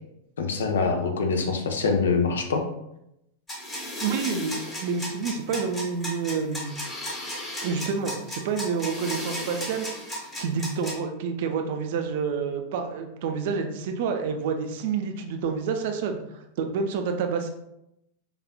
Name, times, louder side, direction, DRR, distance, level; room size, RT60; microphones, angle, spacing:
voice 1, 0.4-2.6, left 4 dB, 65° left, 4 dB, 0.5 m, -24 dB
sound 1, 3.5-10.9, left 1 dB, 15° left, 1.1 m, -34 dB
voice 2, 4.0-6.8 7.6-9.9 10.4-17.5, right 5 dB, 50° right, 5 dB, 0.4 m, -28 dB
4.9 x 2.3 x 2.2 m, 0.83 s
figure-of-eight pair, 90°, 0 cm